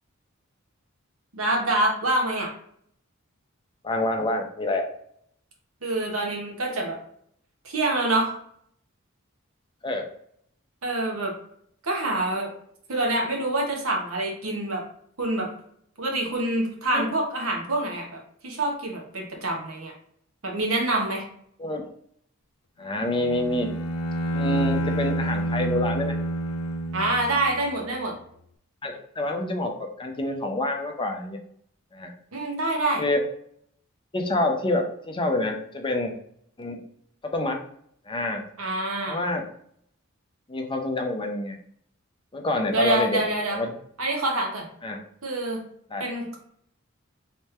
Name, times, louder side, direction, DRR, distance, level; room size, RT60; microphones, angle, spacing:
voice 1, 1.3-2.5 5.8-7.0 7.6-8.3 10.8-11.3 11.8-12.5 12.9-14.8 15.2-15.5 16.0-19.9 20.4-21.3 26.9-28.1 32.3-33.0 38.6-39.2 42.7-43.6 44.0-44.7 45.2-45.6 46.0-46.4, right 2 dB, 70° right, 1 dB, 1.0 m, -26 dB
voice 2, 3.8-4.9 9.8-10.1 16.9-17.1 21.6-21.9 22.8-23.7 24.3-26.2 28.8-31.4 31.9-32.1 33.0-33.2 34.1-36.1 36.6-36.8 37.2-37.6 38.1-38.4 39.1-39.4 40.5-41.6 42.3-43.2 43.5-43.7 44.8-45.0 45.9-46.1, left 2 dB, 25° left, 3 dB, 0.6 m, -27 dB
Bowed string instrument, 23.0-27.8, right 1 dB, 85° left, 0.4 m, -28 dB
3.2 x 3.1 x 3.2 m, 0.66 s
head